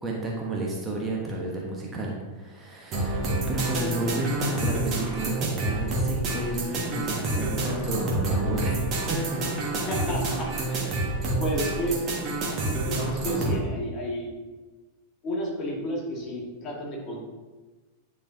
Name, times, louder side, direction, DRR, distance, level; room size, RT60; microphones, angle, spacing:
voice 1, 0.0-8.8 9.1-9.4, right 1 dB, 15° right, -3 dB, 1.2 m, -31 dB
sound 1, 2.9-13.6, right 2 dB, 35° right, 1.6 m, -28 dB
voice 2, 9.9-11.1 11.4-12.1 12.5-14.4 15.2-17.2, equal, 35° left, -2 dB, 1.8 m, -32 dB
10.0 x 4.4 x 2.7 m, 1.3 s
figure-of-eight pair, 90°, 0 cm